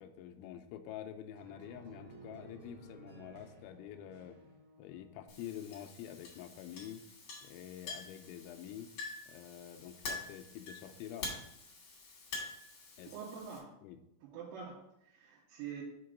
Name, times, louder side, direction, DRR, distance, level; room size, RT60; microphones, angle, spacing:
voice 1, 0.0-4.4 4.8-7.0 7.4-8.9 9.3-11.3 13.0-13.1 13.8-14.0, left 10 dB, 85° left, 5 dB, 2.6 m, -47 dB
sound 1, 1.4-5.5, right 2 dB, 60° right, 2.0 m, -56 dB
Chink clink, 5.3-13.6, left 3 dB, 40° left, 3.1 m, -46 dB
voice 2, 13.0-13.7 14.2-15.8, right 7 dB, 80° right, -6 dB, 3.6 m, -46 dB
7.4 x 3.9 x 6.5 m, 0.80 s
omnidirectional pair, 5.9 m